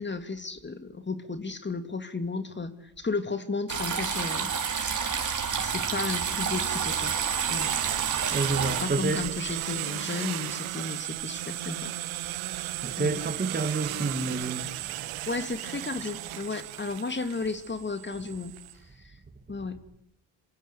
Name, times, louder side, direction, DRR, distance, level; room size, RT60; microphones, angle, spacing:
voice 1, 0.0-5.1 5.6-7.1 7.5-7.7 8.8-11.9 12.5-12.6 13.0-13.1 15.3-18.5 19.0-19.1 19.5-19.8, left 3 dB, 25° left, 2.6 m, -34 dB
sound 1, 3.7-8.8, right 6 dB, 40° right, 4.7 m, -30 dB
sound 2, 4.1-18.7, right 16 dB, 85° right, 1.8 m, -35 dB
voice 2, 8.3-9.3 12.8-14.7, right 3 dB, 20° right, 2.6 m, -29 dB
27.0 x 26.5 x 8.3 m
cardioid pair, 95°, 47 cm